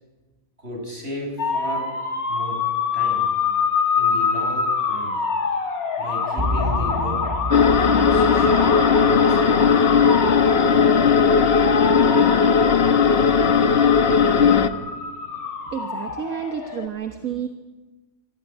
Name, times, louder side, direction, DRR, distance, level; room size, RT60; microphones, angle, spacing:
voice 1, 0.6-2.0 2.3-3.3 4.0-5.2 6.0-7.3 7.8-9.8, equal, 45° right, 1 dB, 7.0 m, -34 dB
sound 1, 1.4-16.9, left 5 dB, 90° left, 2.4 m, -26 dB
sound 2, 6.4-15.4, left 1 dB, 25° right, 1.7 m, -33 dB
sound 3, 7.5-14.7, left 6 dB, 45° left, 1.3 m, -17 dB
voice 2, 15.7-17.5, right 8 dB, 75° right, 6 dB, 1.7 m, -30 dB
25.0 x 15.5 x 9.3 m, 1.2 s
omnidirectional pair, 1.5 m